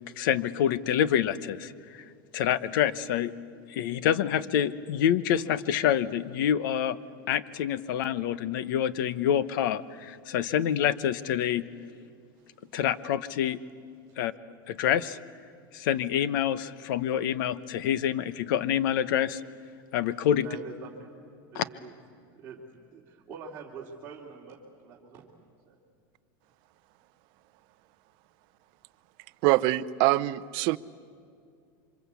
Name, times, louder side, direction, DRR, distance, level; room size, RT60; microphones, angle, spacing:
voice 1, 0.2-2.0 2.3-3.3 3.7-7.0 7.3-11.7 12.7-13.6 14.2-14.3 14.7-15.2 15.7-19.4 19.9-20.5 21.5-21.6, left 10 dB, 65° left, 16 dB, 1.0 m, -27 dB
voice 2, 20.3-21.1 21.5-21.9 22.3-25.3 25.7-25.8, right 5 dB, 20° right, -7 dB, 2.9 m, -45 dB
voice 3, 29.4-30.8, right 18 dB, 45° right, 12 dB, 0.7 m, -24 dB
28.0 x 25.5 x 8.4 m, 2.3 s
supercardioid pair, 165°, 12 cm